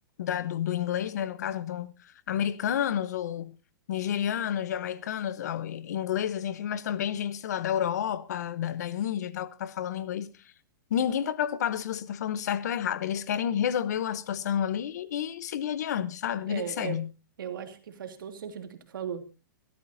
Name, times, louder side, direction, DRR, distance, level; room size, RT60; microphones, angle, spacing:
voice 1, 0.2-3.5 3.9-10.3 10.9-17.1, left 9 dB, 50° left, 0.9 m, -30 dB
voice 2, 16.5-17.0 17.4-19.3, right 8 dB, 75° right, 2.9 m, -37 dB
24.5 x 13.0 x 2.7 m
hypercardioid pair, 180°, 11 cm